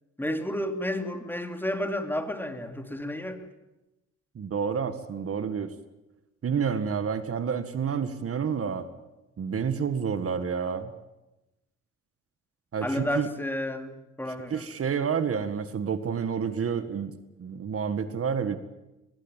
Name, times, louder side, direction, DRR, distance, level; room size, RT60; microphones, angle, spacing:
voice 1, 0.2-3.5 12.8-14.7, left 1 dB, 5° left, 7 dB, 2.8 m, -31 dB
voice 2, 4.4-5.7 6.4-8.9 9.4-10.9 12.7-13.3 14.5-17.1 17.4-18.6, right 6 dB, 50° right, 11 dB, 2.0 m, -29 dB
23.0 x 21.0 x 9.2 m, 0.98 s
cardioid pair, 90°, 30 cm